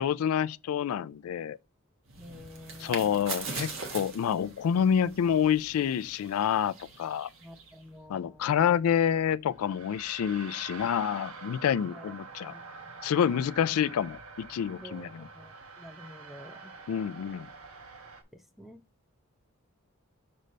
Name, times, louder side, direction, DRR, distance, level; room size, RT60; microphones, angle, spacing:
voice 1, 0.0-1.6 2.8-7.3 8.1-12.5 13.0-15.3 16.9-17.5, left 8 dB, 85° left, 0.3 m, -28 dB
sound 1, 2.1-7.8, right 4 dB, 65° right, 1.5 m, -42 dB
voice 2, 2.2-3.3 7.4-8.5 11.9-12.1 12.5-12.6 13.2-13.3 14.8-16.7 18.3-18.8, equal, ahead, 0.6 m, -49 dB
sound 2, 2.3-18.2, right 4 dB, 85° right, 1.1 m, -49 dB
6.6 x 5.1 x 3.2 m
head